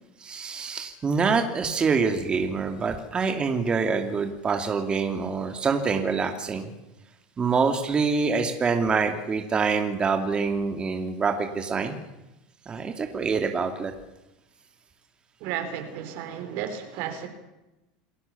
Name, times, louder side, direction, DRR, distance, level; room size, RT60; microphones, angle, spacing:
voice 1, 0.2-6.7 7.4-12.0 12.7-13.9, right 5 dB, 25° right, 2.6 m, -25 dB
voice 2, 15.4-17.3, right 9 dB, 60° right, 4.6 m, -33 dB
28.0 x 18.0 x 7.2 m
supercardioid pair, 120°, 4 cm